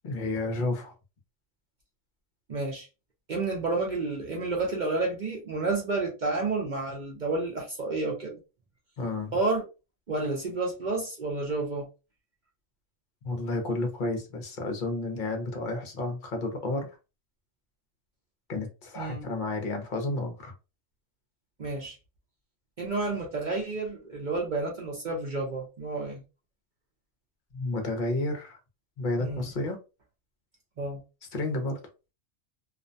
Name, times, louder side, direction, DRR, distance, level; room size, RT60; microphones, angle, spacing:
voice 1, 0.0-0.9 9.0-9.3 13.2-17.0 18.5-20.5 27.5-28.6 29.0-29.8 31.3-31.8, left 2 dB, 50° left, 0.7 m, -31 dB
voice 2, 2.5-2.9 3.3-8.4 9.3-9.7 10.1-11.9 19.0-19.2 21.6-21.9 22.8-26.2 29.2-29.5 30.8-31.0, right 3 dB, 50° right, 0.6 m, -30 dB
2.5 x 2.1 x 2.5 m
omnidirectional pair, 1.4 m